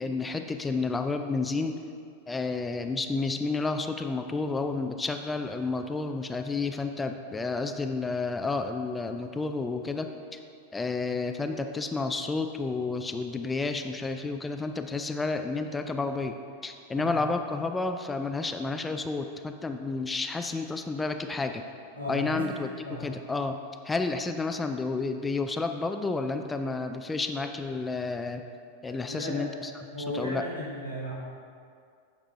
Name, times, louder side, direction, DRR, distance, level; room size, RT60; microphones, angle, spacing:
voice 1, 0.0-1.8 2.3-10.4 10.7-21.6 22.1-22.7 23.0-23.6 23.8-28.4 28.8-29.5 30.1-30.4, left 3 dB, 10° left, 7 dB, 0.4 m, -31 dB
voice 2, 21.9-23.1 28.9-29.5 29.9-31.1, equal, 85° right, -6 dB, 1.8 m, -36 dB
9.9 x 6.0 x 2.7 m, 2.3 s
figure-of-eight pair, 90°, 0 cm